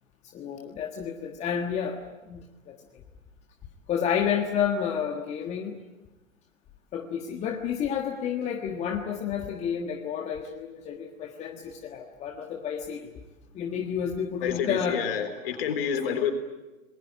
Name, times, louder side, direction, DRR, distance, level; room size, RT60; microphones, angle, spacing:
voice 1, 0.3-2.8 3.9-5.8 6.9-13.1 13.5-15.0 16.0-16.2, left 8 dB, 15° left, 3 dB, 1.5 m, -30 dB
voice 2, 14.4-16.3, left 8 dB, 45° left, 8 dB, 4.0 m, -28 dB
27.5 x 20.5 x 8.8 m, 1.1 s
figure-of-eight pair, 125°, 40 cm